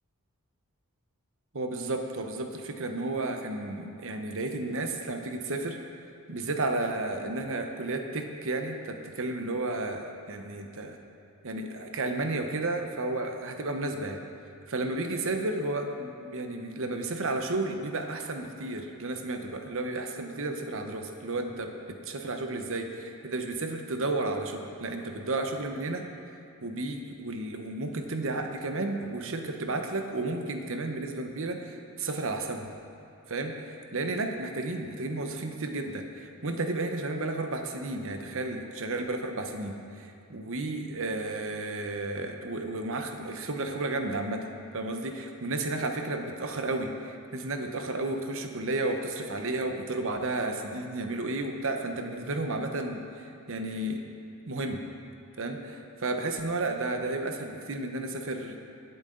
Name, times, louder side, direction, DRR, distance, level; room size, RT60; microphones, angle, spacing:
voice 1, 1.5-5.8 6.3-11.0 11.4-14.2 14.7-26.0 26.6-32.7 33.3-44.5 44.7-54.0 54.5-54.8 55.4-58.6, right 2 dB, 65° right, 4 dB, 1.0 m, -32 dB
18.5 x 8.1 x 3.9 m, 2.6 s
head